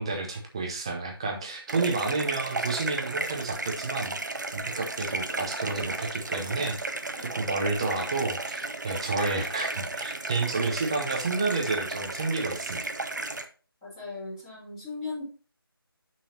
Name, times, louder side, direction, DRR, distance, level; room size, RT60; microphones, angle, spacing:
voice 1, 0.0-4.1 4.5-6.8 7.3-12.9, right 3 dB, 15° right, 2 dB, 0.7 m, -30 dB
sound 1, 1.7-13.4, right 2 dB, 50° right, 0.9 m, -34 dB
voice 2, 13.8-15.2, left 3 dB, 10° left, -10 dB, 3.3 m, -37 dB
9.9 x 5.7 x 2.9 m, 0.36 s
figure-of-eight pair, 165°, 13 cm